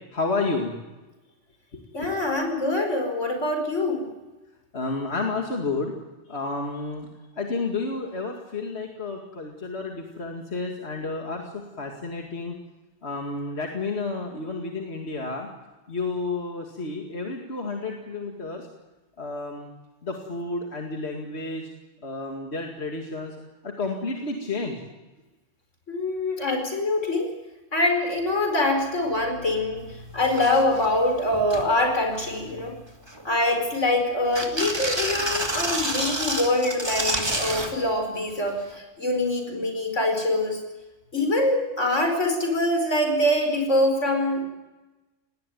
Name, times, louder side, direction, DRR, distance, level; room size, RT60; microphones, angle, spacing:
voice 1, 0.1-0.7 1.7-1.8 4.7-6.0 6.3-7.1 7.4-12.6 13.0-15.5 15.9-18.7 19.2-19.7 20.0-21.7 22.0-23.4 23.6-24.8, left 3 dB, 60° left, 1 dB, 2.5 m, -31 dB
voice 2, 1.9-4.1 25.9-27.3 27.7-32.7 33.3-40.6 41.1-44.4, left 1 dB, 80° left, 4 dB, 5.2 m, -24 dB
sound 1, 29.9-30.0 30.2-30.9 31.3-31.7 32.1-32.6 33.1-33.9 34.3-37.7 38.8-38.9, right 1 dB, 20° right, 2.6 m, -29 dB
19.5 x 18.0 x 9.3 m, 1.1 s
omnidirectional pair, 1.2 m